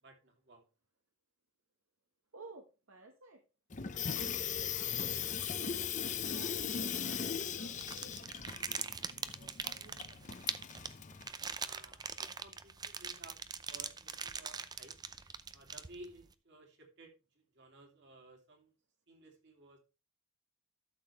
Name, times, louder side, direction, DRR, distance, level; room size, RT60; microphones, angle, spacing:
voice 1, 0.0-0.6 11.5-13.4 13.7-15.0 15.5-18.7 19.1-19.8, right 2 dB, 55° right, 2.8 m, -56 dB
voice 2, 2.3-3.4 3.8-5.3 6.0-7.3 7.6-8.4 8.9-10.3, right 3 dB, 70° right, 1.3 m, -57 dB
Water tap faucet / Sink (filling or washing), 3.7-11.3, left 7 dB, 35° left, 0.6 m, -38 dB
sound 1, 7.8-16.2, right 6 dB, 20° right, 0.5 m, -42 dB
12.0 x 6.8 x 3.3 m
head